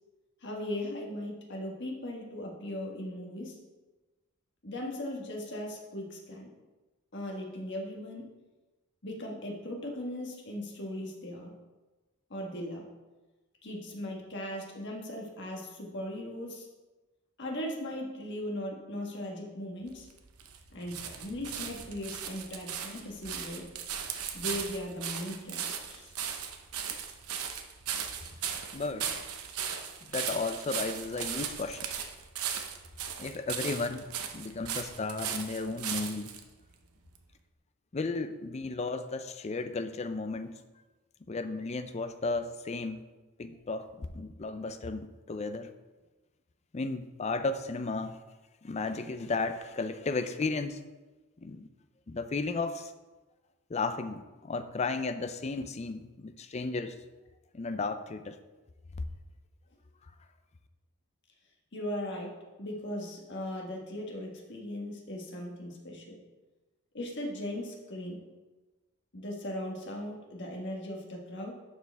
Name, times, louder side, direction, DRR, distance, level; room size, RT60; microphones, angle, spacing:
voice 1, 0.4-3.6 4.6-6.5 7.1-8.2 9.0-11.5 12.3-12.8 13.6-16.7 17.4-20.1 20.7-23.6 24.3-26.1 61.7-62.3 62.6-66.1 66.9-68.2 69.1-71.5, left 1 dB, 50° left, 0 dB, 1.5 m, -38 dB
sound 1, 19.9-36.4 37.1-37.2, right 8 dB, 75° right, 0.8 m, -37 dB
voice 2, 28.7-29.2 30.1-31.9 33.2-36.3 37.9-40.5 41.3-43.0 43.4-45.7 46.7-48.2 48.6-50.8 51.4-51.7 52.1-52.9 53.7-57.0 57.5-58.4, left 3 dB, 30° left, 9 dB, 0.4 m, -34 dB
11.0 x 4.8 x 3.5 m, 1.2 s
head